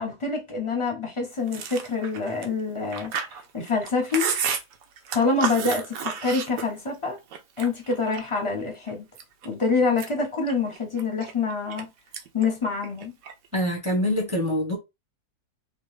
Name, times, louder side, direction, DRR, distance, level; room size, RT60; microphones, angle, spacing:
voice 1, 0.0-3.1 3.5-4.3 5.1-5.9 6.2-7.2 7.6-9.0 9.4-11.9 12.3-13.1, left 4 dB, 30° left, 0.5 m, -26 dB
Chewing mastication, 1.5-7.0 7.3-8.4 8.9-9.5 9.8-11.8 12.1-12.5 12.7-13.6, right 7 dB, 70° right, 1.0 m, -32 dB
voice 2, 13.5-14.8, left 1 dB, 15° right, 0.7 m, -25 dB
3.0 x 2.4 x 3.1 m
omnidirectional pair, 1.7 m